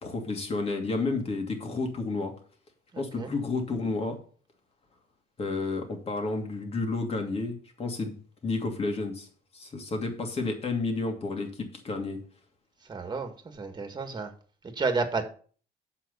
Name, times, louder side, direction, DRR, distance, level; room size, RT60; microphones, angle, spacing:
voice 1, 0.0-2.4 3.0-4.2 5.4-8.1 8.4-9.3 9.5-12.2, left 3 dB, 35° left, 3 dB, 2.6 m, -31 dB
voice 2, 2.9-3.3 12.9-14.3 14.8-15.2, right 4 dB, 25° right, 7 dB, 1.9 m, -31 dB
7.6 x 6.1 x 6.9 m, 0.42 s
cardioid pair, 110°, 17 cm